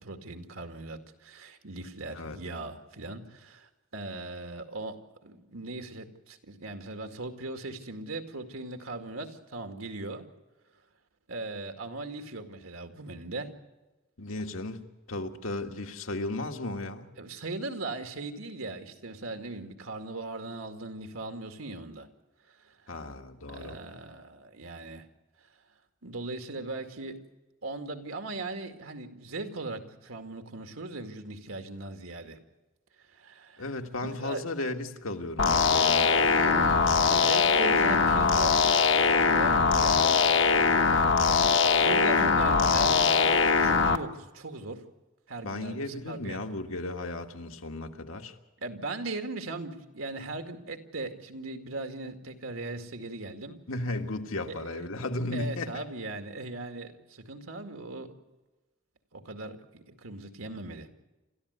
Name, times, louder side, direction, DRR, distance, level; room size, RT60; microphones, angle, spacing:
voice 1, 0.0-10.3 11.3-13.5 17.2-22.1 22.5-23.0 23.5-25.1 26.0-27.2 27.6-32.4 33.0-33.7 34.2-34.4 36.3-38.6 39.3-40.7 41.8-44.8 45.3-46.4 48.6-53.6 54.5-54.9 55.3-58.2 59.1-60.9, right 2 dB, 90° right, 6 dB, 2.2 m, -39 dB
voice 2, 14.2-17.1 22.9-23.8 33.6-36.3 45.4-48.3 53.7-55.8, left 2 dB, 85° left, 4 dB, 1.7 m, -35 dB
sound 1, 35.4-44.0, left 4 dB, 65° left, 1.0 m, -22 dB
28.5 x 14.0 x 8.1 m, 1.1 s
head